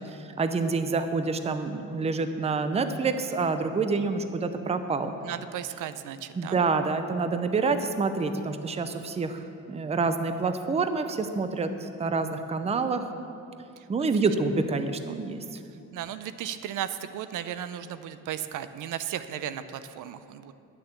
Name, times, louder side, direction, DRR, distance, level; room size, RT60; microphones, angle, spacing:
voice 1, 0.0-5.1 6.3-13.1 13.9-15.4, right 4 dB, 20° right, 9 dB, 0.6 m, -27 dB
voice 2, 5.2-6.6 15.9-20.5, right 10 dB, 70° right, 12 dB, 0.6 m, -35 dB
11.5 x 6.7 x 8.2 m, 2.6 s
cardioid pair, 140°, 33 cm